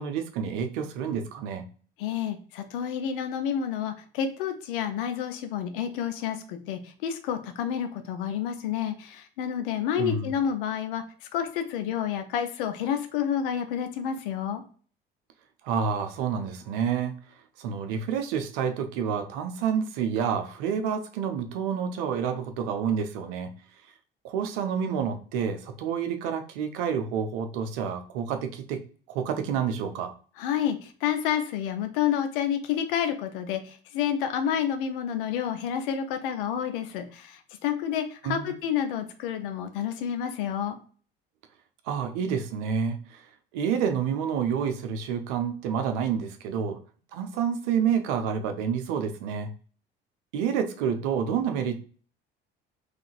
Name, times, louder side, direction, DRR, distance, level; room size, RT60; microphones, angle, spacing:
voice 1, 0.0-1.7 10.0-10.3 15.6-17.1 17.6-23.5 24.2-28.8 29.1-30.2 38.2-38.5 41.9-43.3 43.5-46.8 47.1-49.5 50.3-51.8, right 7 dB, 60° right, 7 dB, 0.7 m, -29 dB
voice 2, 2.0-11.0 11.3-14.6 30.4-40.8, left 9 dB, 65° left, 8 dB, 0.6 m, -29 dB
3.8 x 3.1 x 2.5 m, 0.41 s
figure-of-eight pair, 55°, 29 cm